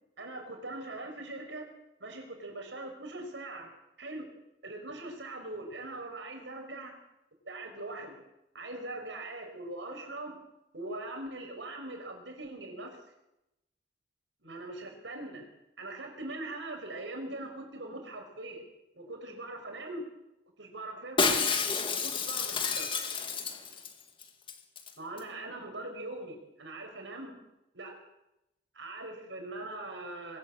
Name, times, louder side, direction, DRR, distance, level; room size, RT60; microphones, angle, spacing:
voice 1, 0.2-1.7 2.0-4.3 4.6-6.9 7.5-8.2 8.5-10.4 10.7-13.0 14.4-15.5 15.8-18.6 18.9-20.0 20.6-21.5 21.9-22.9 25.0-27.4 27.7-27.9 28.7-30.4, right 2 dB, 80° right, 3 dB, 5.8 m, -41 dB
Shatter, 21.2-23.9 24.2-24.3 24.5-24.9 25.2-25.3, left 5 dB, 30° left, 1.9 m, -30 dB
22.5 x 13.5 x 8.6 m, 0.90 s
head